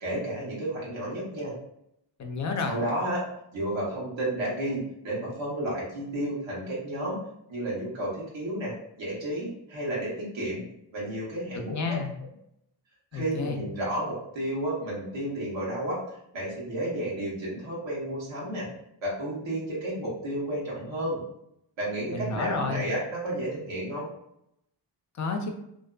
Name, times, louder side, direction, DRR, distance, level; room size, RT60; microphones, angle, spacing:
voice 1, 0.0-1.5 2.7-3.2 3.5-7.2 7.5-10.6 10.9-11.7 13.1-18.7 19.0-21.2 21.8-24.1, right 1 dB, 80° right, -6 dB, 1.0 m, -32 dB
voice 2, 2.2-2.8 11.5-12.1 13.1-13.6 22.1-22.9 25.2-25.5, left 4 dB, 40° left, 4 dB, 0.4 m, -30 dB
2.5 x 2.3 x 2.2 m, 0.77 s
wide cardioid pair, 90°, 45 cm